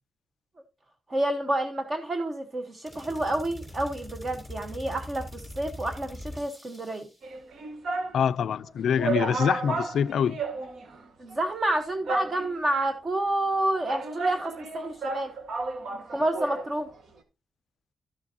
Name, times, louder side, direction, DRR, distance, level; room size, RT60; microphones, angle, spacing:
voice 1, 1.1-7.1 11.2-15.3 15.9-16.9, right 1 dB, 30° right, 1.0 m, -29 dB
sound 1, 2.8-7.3, left 1 dB, 15° right, 4.4 m, -42 dB
sound 2, 7.2-8.2 8.6-8.7 9.0-11.0 11.3-11.4 12.1-12.8 13.5-16.7 17.0-17.1, right 3 dB, 70° right, 1.5 m, -32 dB
voice 2, 8.1-10.4, left 8 dB, 75° left, 0.3 m, -25 dB
12.5 x 7.1 x 2.7 m
wide cardioid pair, 145°, 0 cm